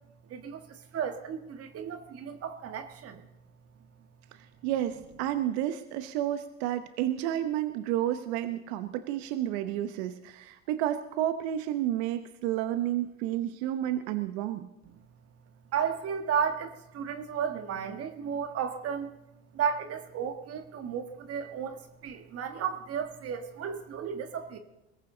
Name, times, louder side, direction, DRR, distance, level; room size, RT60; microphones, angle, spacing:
voice 1, 0.3-3.2 15.7-19.1 19.5-24.6, right 7 dB, 45° right, 7 dB, 1.6 m, -33 dB
voice 2, 4.6-14.7, right 12 dB, 80° right, 10 dB, 0.9 m, -31 dB
21.5 x 14.5 x 3.9 m, 0.90 s
supercardioid pair, 100°, 32 cm